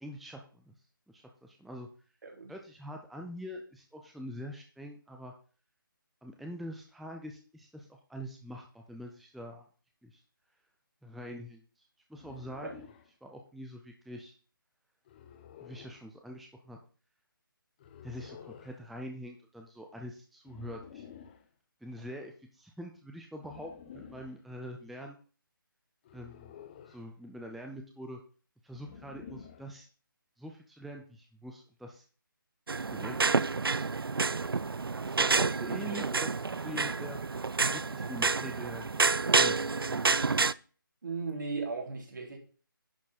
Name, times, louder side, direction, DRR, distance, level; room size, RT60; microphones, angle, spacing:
voice 1, 0.0-0.7 1.1-1.9 2.5-5.3 6.2-9.7 10.0-10.2 11.0-12.9 13.2-14.3 15.6-16.8 18.0-21.1 21.8-25.2 26.1-26.5 26.9-28.2 28.6-29.9 30.4-32.0 32.8-33.4 35.0-37.2 37.7-38.9 39.3-40.1, equal, ahead, 2 dB, 0.4 m, -44 dB
sound 1, 12.1-13.1 15.1-16.0 17.8-18.8 20.4-21.5 23.4-24.4 26.0-27.1 28.7-29.7, left 8 dB, 25° left, 1.0 m, -51 dB
sound 2, 32.7-40.5, right 4 dB, 90° right, 0.4 m, -29 dB
voice 2, 35.3-36.1 41.0-42.4, right 4 dB, 60° right, 1 dB, 3.3 m, -37 dB
10.5 x 6.2 x 4.1 m, 0.39 s
figure-of-eight pair, 155°, 12 cm